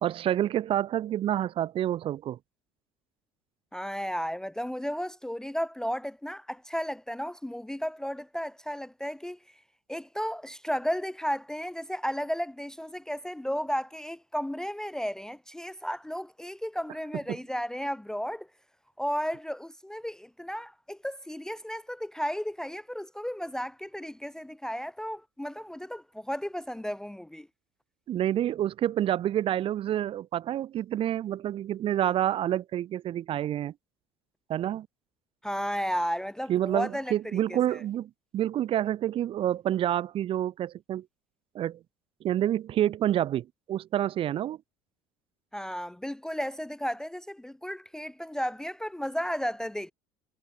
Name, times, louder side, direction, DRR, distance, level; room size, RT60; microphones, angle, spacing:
voice 1, 0.0-2.4 17.3-17.4 28.1-33.7 34.5-34.9 36.5-41.1 41.5-41.8 42.2-44.6, right 11 dB, 45° right, 0.9 m, -28 dB
voice 2, 3.7-9.4 9.9-18.5 19.0-27.5 35.4-37.1 37.5-37.6 45.5-49.9, equal, 5° left, 0.6 m, -34 dB
hypercardioid pair, 80°, 12 cm